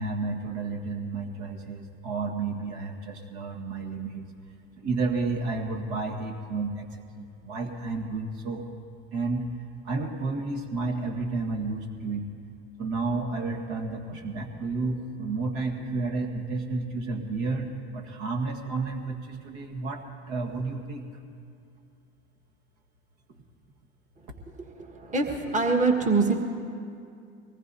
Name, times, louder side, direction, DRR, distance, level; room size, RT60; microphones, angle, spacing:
voice 1, 0.0-4.3 4.8-8.6 9.1-9.4 9.8-12.3 12.8-21.0 23.3-23.4, right 3 dB, 60° right, 2 dB, 1.7 m, -31 dB
voice 2, 25.1-26.3, right 3 dB, 25° right, 1 dB, 1.6 m, -23 dB
23.5 x 19.0 x 2.8 m, 2.5 s
hypercardioid pair, 80°, 33 cm